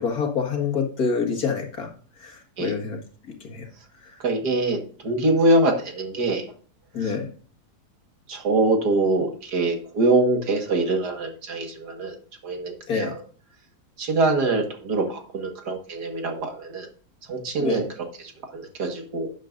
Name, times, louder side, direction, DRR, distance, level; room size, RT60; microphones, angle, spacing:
voice 1, 0.0-1.9 2.2-3.0 3.4-3.7 4.0-4.2 6.9-7.3 12.9-13.1 17.6-17.8, left 5 dB, 65° left, 2 dB, 2.3 m, -26 dB
voice 2, 4.2-4.8 5.0-6.5 7.0-7.1 8.3-12.2 12.4-13.2 14.0-16.9 17.3-17.9 18.2-19.3, right 2 dB, 75° right, 4 dB, 2.2 m, -24 dB
11.5 x 9.7 x 2.6 m, 0.42 s
omnidirectional pair, 1.7 m